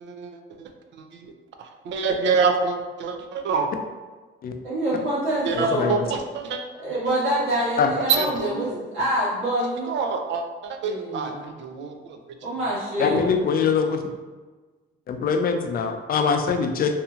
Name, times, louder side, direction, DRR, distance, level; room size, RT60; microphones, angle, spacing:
voice 1, 0.0-0.7 1.1-1.3 1.6-3.7 5.4-6.6 8.1-8.8 9.9-12.2, right 5 dB, 65° right, 5 dB, 0.4 m, -26 dB
voice 2, 4.6-6.0 6.8-9.9 10.8-11.5 12.4-13.4, right 1 dB, 85° right, -8 dB, 1.3 m, -26 dB
voice 3, 5.5-6.0 7.8-7.9 13.0-14.0 15.1-16.9, left 6 dB, 50° left, 6 dB, 0.4 m, -23 dB
2.7 x 2.7 x 2.3 m, 1.3 s
cardioid pair, 90°, 20 cm